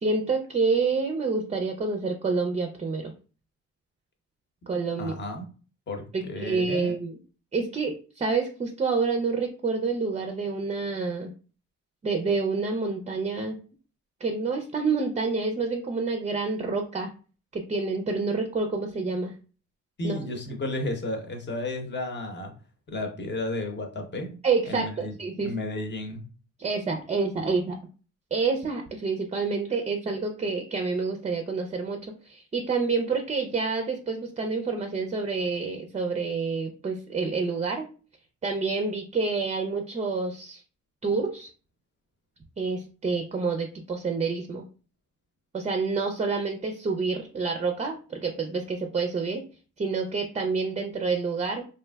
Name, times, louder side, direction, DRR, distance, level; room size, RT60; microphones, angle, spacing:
voice 1, 0.0-3.1 4.7-5.1 6.1-7.2 7.5-11.3 12.0-13.6 14.2-17.1 17.5-19.3 20.0-20.2 24.4-25.5 26.6-27.8 28.3-37.9 38.4-40.6 41.0-41.5 42.6-44.6 45.5-49.4 49.8-51.6, right 4 dB, 25° right, 5 dB, 0.4 m, -28 dB
voice 2, 5.0-5.5 5.9-6.9 20.0-22.5 22.9-24.4 24.6-25.2 25.4-26.2, left 2 dB, 35° left, 4 dB, 0.9 m, -33 dB
3.2 x 2.6 x 2.2 m, 0.37 s
cardioid pair, 90°, 30 cm